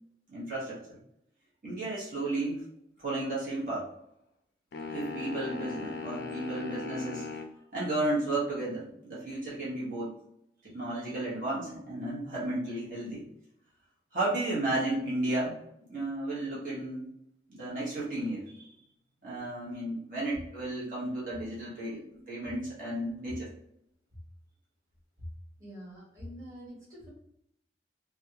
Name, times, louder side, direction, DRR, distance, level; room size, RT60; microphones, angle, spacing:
voice 1, 0.3-1.0 1.6-2.7 3.0-3.9 4.9-7.4 7.7-10.1 10.6-13.2 14.1-15.6 15.9-17.1 17.5-18.7 19.2-23.5, right 2 dB, 50° right, -8 dB, 1.2 m, -33 dB
sound 1, 4.7-7.5, left 5 dB, 65° left, 0.3 m, -38 dB
voice 2, 25.6-27.1, equal, 20° right, -8 dB, 1.2 m, -47 dB
3.4 x 2.3 x 2.8 m, 0.76 s
head